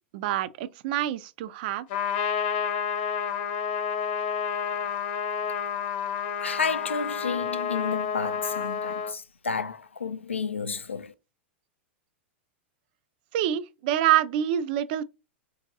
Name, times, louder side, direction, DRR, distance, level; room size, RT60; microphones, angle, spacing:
voice 1, 0.1-1.9 13.3-15.0, right 11 dB, 50° right, 0.3 m, -26 dB
Trumpet, 1.9-9.1, left 7 dB, 50° left, 0.9 m, -30 dB
voice 2, 6.4-11.1, left 5 dB, 85° left, 0.4 m, -31 dB
4.4 x 2.7 x 2.6 m
figure-of-eight pair, 95°, 6 cm